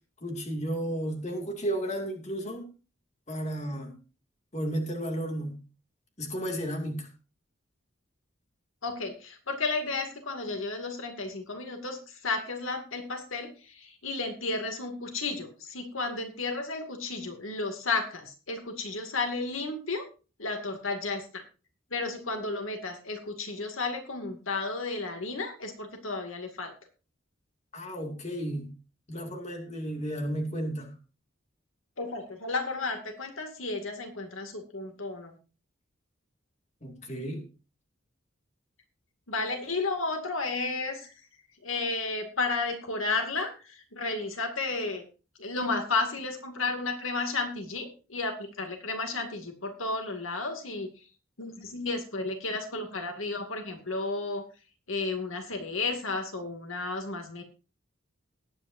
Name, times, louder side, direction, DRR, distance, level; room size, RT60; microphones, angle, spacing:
voice 1, 0.2-2.7 3.3-3.9 4.5-5.6 6.2-7.1 27.7-28.7 29.1-30.9 36.8-37.4, right 1 dB, 35° left, 3 dB, 2.4 m, -33 dB
voice 2, 8.8-20.1 20.4-21.4 21.9-26.7 32.0-35.4 39.3-41.1 41.6-45.0 45.4-50.9 51.4-54.5 54.9-57.4, left 3 dB, 80° left, 4 dB, 2.3 m, -33 dB
19.5 x 9.3 x 2.7 m, 0.33 s
head